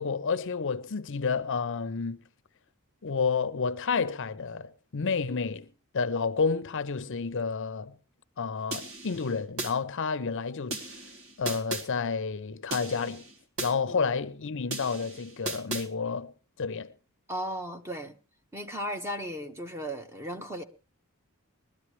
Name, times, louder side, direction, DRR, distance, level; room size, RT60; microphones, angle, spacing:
voice 1, 0.0-2.2 3.0-5.7 5.9-8.0 8.4-10.9 11.4-13.3 13.6-16.3 16.6-16.9, left 5 dB, 60° left, 0.6 m, -30 dB
sound 1, 8.7-9.7 10.7-11.9 12.7-13.7 14.7-15.9, right 2 dB, 70° right, 1.8 m, -36 dB
voice 2, 17.3-18.1 18.5-20.6, equal, 15° right, 1.2 m, -36 dB
21.0 x 13.0 x 3.2 m
head